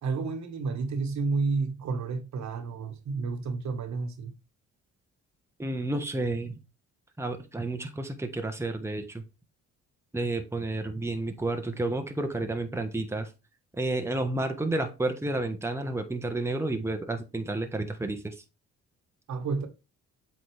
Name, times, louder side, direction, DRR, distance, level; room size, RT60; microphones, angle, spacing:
voice 1, 0.0-4.3 19.3-19.7, right 4 dB, 65° right, 1.5 m, -30 dB
voice 2, 5.6-6.6 7.2-9.2 10.1-13.3 13.8-18.3, right 2 dB, 10° right, 1.2 m, -31 dB
7.8 x 4.3 x 3.4 m
cardioid pair, 90°, 30 cm